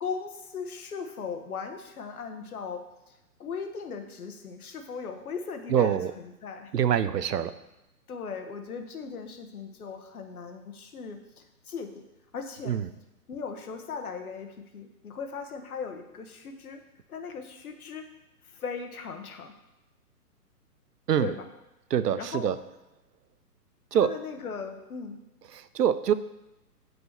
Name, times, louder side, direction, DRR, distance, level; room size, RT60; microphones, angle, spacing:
voice 1, 0.0-3.1 3.4-6.7 8.1-12.0 12.3-12.8 13.3-16.8 17.1-18.1 18.4-19.5 21.2-21.5 22.2-22.5 24.0-25.2, left 5 dB, 65° left, 6 dB, 1.2 m, -38 dB
voice 2, 5.7-6.1 6.7-7.6 12.6-12.9 21.1-21.3 21.9-22.6 23.9-24.1 25.5-26.1, right 9 dB, 80° right, 14 dB, 0.6 m, -25 dB
6.2 x 4.9 x 6.6 m, 0.94 s
hypercardioid pair, 140°, 47 cm